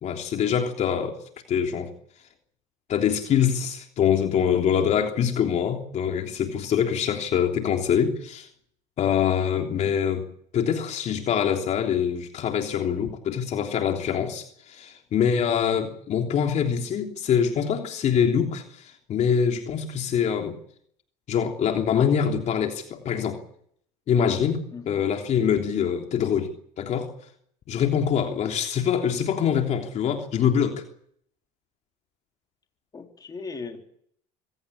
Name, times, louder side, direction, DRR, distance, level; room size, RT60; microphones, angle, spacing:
voice 1, 0.0-1.2 1.5-1.9 2.9-8.5 9.0-10.3 10.5-20.6 21.3-23.4 24.1-26.5 26.8-27.1 27.7-30.8, left 8 dB, 45° left, 3.4 m, -24 dB
voice 2, 9.7-10.0 24.7-25.0 32.9-33.9, left 4 dB, 25° left, 3.7 m, -39 dB
24.5 x 17.0 x 8.7 m
supercardioid pair, 105°, 16 cm